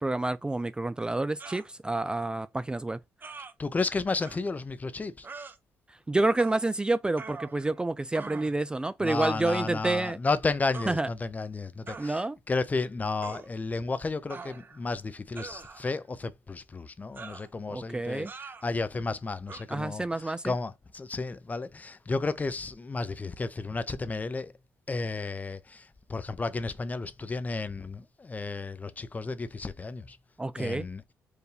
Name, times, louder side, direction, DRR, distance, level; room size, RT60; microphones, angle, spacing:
voice 1, 0.0-3.0 5.9-10.2 10.9-11.1 12.0-12.4 17.7-18.3 19.7-20.5 30.4-30.9, right 2 dB, 15° right, 0.4 m, -29 dB
sound 1, 1.4-1.7 3.2-3.5 4.2-4.4 5.2-5.6 6.4-6.7 7.2-7.8 8.1-8.6 9.2-9.5 10.7-10.9 11.9-12.1 13.2-13.5 14.3-14.8 15.4-16.0 17.2-17.5 18.3-18.7 19.5-19.6, right 4 dB, 35° right, 0.8 m, -43 dB
voice 2, 3.6-5.3 9.0-24.5 24.9-30.2 30.6-31.0, left 3 dB, 25° left, 0.6 m, -33 dB
4.6 x 2.6 x 3.4 m
supercardioid pair, 70°, 6 cm